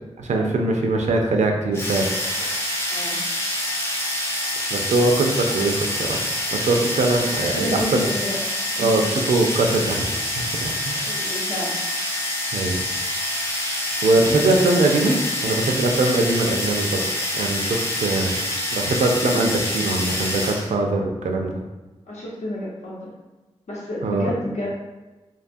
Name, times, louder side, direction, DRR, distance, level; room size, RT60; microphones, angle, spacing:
voice 1, 0.2-2.6 4.7-6.2 6.5-8.0 8.8-10.1 10.3-11.1 12.5-12.8 14.0-17.0 17.4-18.4 18.7-21.5 24.0-24.3, right 2 dB, 85° right, 2 dB, 0.4 m, -22 dB
sound 1, 1.7-20.7, left 1 dB, 20° left, 0.5 m, -26 dB
voice 2, 2.9-3.2 7.5-8.4 8.7-9.0 11.0-11.7 14.3-14.4 22.1-23.1 23.7-24.7, left 1 dB, 80° left, -6 dB, 0.8 m, -30 dB
2.6 x 2.3 x 2.5 m, 1.1 s
cardioid pair, 55°, 12 cm